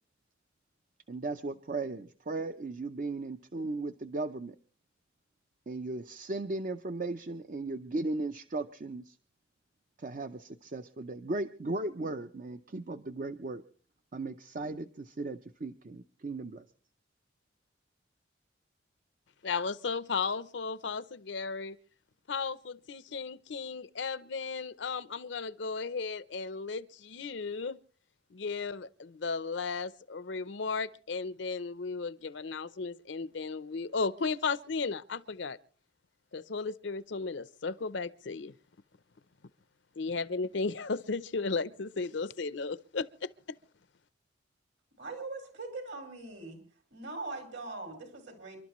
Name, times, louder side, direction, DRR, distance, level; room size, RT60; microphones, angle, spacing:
voice 1, 1.1-4.6 5.7-9.2 10.0-13.6 14.1-16.6, right 2 dB, 45° right, 0.6 m, -36 dB
voice 2, 19.4-21.8 22.3-27.8 28.3-35.6 36.3-38.5 40.0-43.6, left 4 dB, 70° left, 0.7 m, -35 dB
voice 3, 45.0-46.6 46.9-48.6, right 3 dB, 70° right, 5.7 m, -41 dB
29.0 x 12.0 x 3.1 m
head